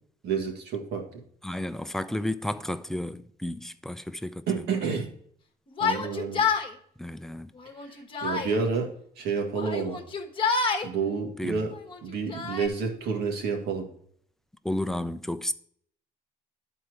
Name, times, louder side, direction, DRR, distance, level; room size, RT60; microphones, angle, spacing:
voice 1, 0.2-1.1 4.5-5.1 5.8-6.4 7.8-10.0 10.8-11.8 12.0-13.9, right 5 dB, 70° right, 2.0 m, -29 dB
voice 2, 1.4-4.5 7.0-7.5 11.4-11.6 14.6-15.5, left 1 dB, ahead, 0.5 m, -32 dB
Yell, 5.7-6.7 7.6-8.5 9.5-10.9 11.8-12.7, left 5 dB, 30° left, 1.3 m, -28 dB
11.5 x 4.4 x 4.7 m
cardioid pair, 110°, 17 cm